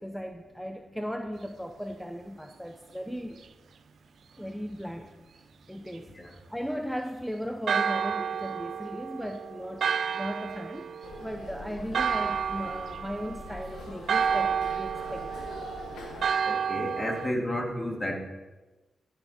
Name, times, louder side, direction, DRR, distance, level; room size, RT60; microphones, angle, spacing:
voice 1, 0.0-3.4 4.4-5.1 5.3-5.4 5.7-6.1 6.5-9.9 10.1-10.9 11.2-15.5, equal, ahead, 5 dB, 0.8 m, -37 dB
Church bell, 7.7-17.3, right 7 dB, 75° right, 0.4 m, -31 dB
sound 1, 11.0-16.3, left 2 dB, 90° left, 1.7 m, -43 dB
voice 2, 16.4-18.2, left 1 dB, 35° left, 1 dB, 2.4 m, -31 dB
15.0 x 7.2 x 4.4 m, 1.2 s
cardioid pair, 60°, 0 cm